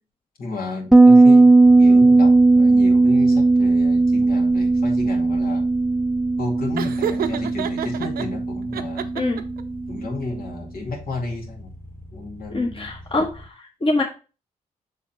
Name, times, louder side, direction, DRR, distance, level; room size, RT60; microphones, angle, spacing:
voice 1, 0.4-5.7 6.4-9.1 9.9-11.7 12.1-12.9, left 3 dB, 70° left, -1 dB, 2.5 m, -33 dB
Bass guitar, 0.9-10.3, right 3 dB, 5° right, 0.4 m, -16 dB
sound 1, 1.6-13.5, left 1 dB, 15° left, 1.3 m, -42 dB
Laughter, 6.8-8.3 8.7-9.6, right 9 dB, 75° right, 0.7 m, -28 dB
voice 2, 12.5-14.0, left 2 dB, 35° left, 1 dB, 1.4 m, -24 dB
6.2 x 4.0 x 4.4 m, 0.33 s
supercardioid pair, 55°, 16 cm